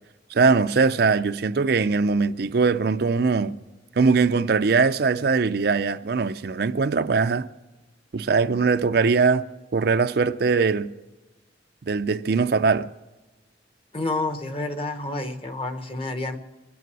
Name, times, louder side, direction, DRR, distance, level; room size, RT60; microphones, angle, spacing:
voice 1, 0.3-3.6 4.0-7.5 8.1-9.5 9.7-10.9 11.8-12.9, right 4 dB, 55° right, 0.4 m, -21 dB
voice 2, 13.9-16.4, left 2 dB, 30° left, 1.1 m, -29 dB
23.5 x 9.3 x 6.1 m
head